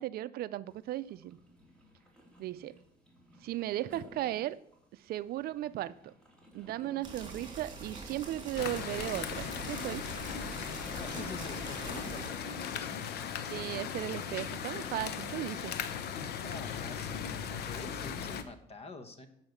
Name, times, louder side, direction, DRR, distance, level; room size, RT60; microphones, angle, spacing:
voice 1, 0.0-1.4 2.4-2.8 3.4-4.6 4.9-6.1 6.5-10.1 13.5-15.7, right 14 dB, 65° right, 15 dB, 0.4 m, -36 dB
sound 1, 0.7-14.2, equal, 5° left, 2.6 m, -59 dB
sound 2, 7.0-12.3, right 3 dB, 25° right, 2.8 m, -44 dB
sound 3, 8.6-18.4, left 8 dB, 70° left, 0.9 m, -38 dB
voice 2, 11.0-12.9 16.4-19.3, left 3 dB, 35° left, 9 dB, 1.3 m, -47 dB
8.8 x 5.7 x 8.0 m, 0.72 s
cardioid pair, 110°, 17 cm